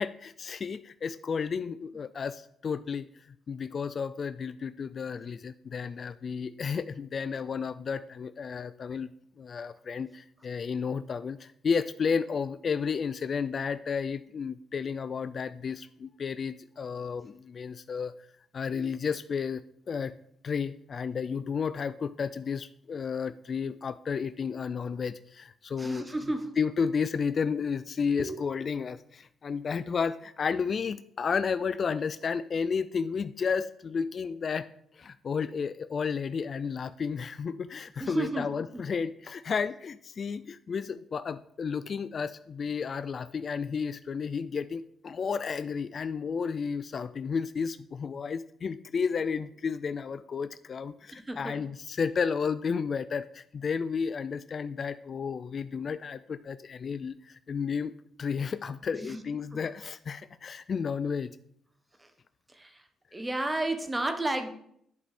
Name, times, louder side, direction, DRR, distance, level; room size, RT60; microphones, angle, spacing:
voice 1, 0.0-3.1 3.5-9.1 9.4-18.1 18.5-19.6 19.9-20.1 20.4-26.1 26.6-34.7 35.0-57.9 58.2-61.3, left 6 dB, 45° left, 14 dB, 0.3 m, -32 dB
voice 2, 25.8-26.5 28.2-28.4 38.0-38.8 51.1-51.6 58.9-59.2 59.5-59.6 62.0-62.1 62.5-62.8 63.1-64.5, right 2 dB, 15° right, 7 dB, 1.1 m, -32 dB
11.0 x 4.8 x 4.2 m, 0.69 s
cardioid pair, 90°, 0 cm